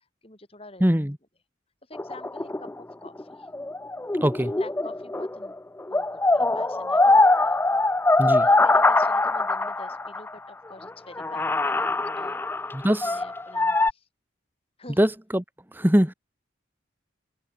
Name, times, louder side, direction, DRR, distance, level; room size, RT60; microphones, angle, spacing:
voice 1, 0.2-0.8 1.9-2.7 3.0-3.5 4.6-5.6 5.9-7.5 8.2-12.4 13.0-14.1 14.8-15.0, left 2 dB, 30° left, 3.1 m, -46 dB
voice 2, 0.8-1.2 4.2-4.5 8.2-8.5 12.7-13.2 15.0-15.4 15.7-16.1, equal, 10° right, 1.3 m, -22 dB
sound 1, 1.9-5.5 5.8-10.3 10.8-10.9 11.2-13.9, left 2 dB, 10° left, 0.3 m, -22 dB
open air
head